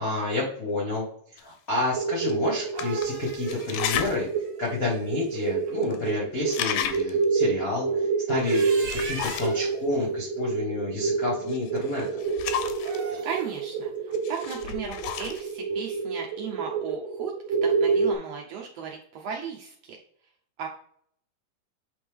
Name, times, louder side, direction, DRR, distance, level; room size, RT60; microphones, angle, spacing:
voice 1, 0.0-8.7 8.9-12.2, left 2 dB, 70° left, -3 dB, 0.8 m, -30 dB
sound 1, 1.4-1.5 2.2-2.3 2.7-4.2 4.7-4.8 5.5-5.6 5.8-6.1 6.4-7.3 8.4-9.7 11.5-13.0 14.1-15.5, left 9 dB, 90° left, 2.3 m, -33 dB
sound 2, 1.9-18.1, right 5 dB, 75° right, 1.5 m, -28 dB
sound 3, 2.5-5.5 8.2-9.7 12.7-13.6, right 5 dB, 60° right, 1.9 m, -39 dB
voice 2, 13.2-20.0 20.6-20.7, right 7 dB, 90° right, 0 dB, 1.4 m, -36 dB
8.4 x 3.4 x 3.5 m, 0.62 s
omnidirectional pair, 3.8 m